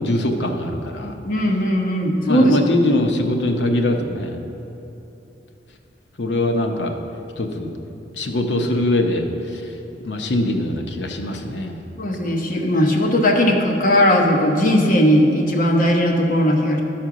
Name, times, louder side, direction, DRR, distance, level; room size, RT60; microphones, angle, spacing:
voice 1, 0.0-1.1 2.3-4.4 6.2-6.9 7.4-7.7 8.1-9.3 9.5-9.7 10.0-11.8, left 1 dB, 75° left, 4 dB, 0.8 m, -22 dB
voice 2, 1.0-2.6 12.0-16.8, equal, 50° left, 0 dB, 1.1 m, -18 dB
12.0 x 4.4 x 6.1 m, 2.9 s
head